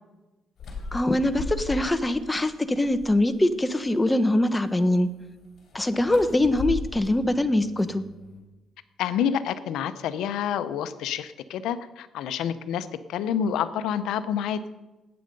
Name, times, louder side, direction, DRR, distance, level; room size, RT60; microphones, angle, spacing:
sound 1, 0.6-2.1 2.5-3.4 5.6-8.4, left 3 dB, 60° left, 4.5 m, -37 dB
voice 1, 0.9-5.1 5.7-8.0, left 1 dB, 15° left, 10 dB, 1.1 m, -23 dB
voice 2, 9.0-14.6, left 8 dB, 85° left, 12 dB, 0.7 m, -28 dB
19.0 x 8.8 x 5.3 m, 1.1 s
cardioid pair, 90°, 0 cm